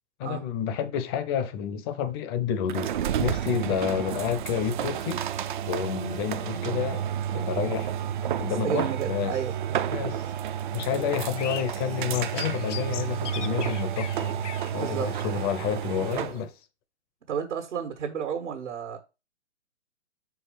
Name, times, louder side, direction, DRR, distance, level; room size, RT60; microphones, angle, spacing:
voice 1, 0.2-2.9 3.2-5.2 5.7-7.0 7.3-7.9 8.4-9.4 9.9-10.2 10.7-14.5 14.7-16.5, left 8 dB, 20° left, 0.5 m, -29 dB
sound 1, 2.7-16.4, right 10 dB, 45° right, 0.5 m, -31 dB
voice 2, 8.5-9.5 14.7-15.1 17.3-19.0, right 7 dB, 75° right, 1.6 m, -31 dB
sound 2, 11.3-16.4, left 9 dB, 85° left, 0.6 m, -41 dB
5.4 x 4.7 x 5.0 m
hypercardioid pair, 140°, 35 cm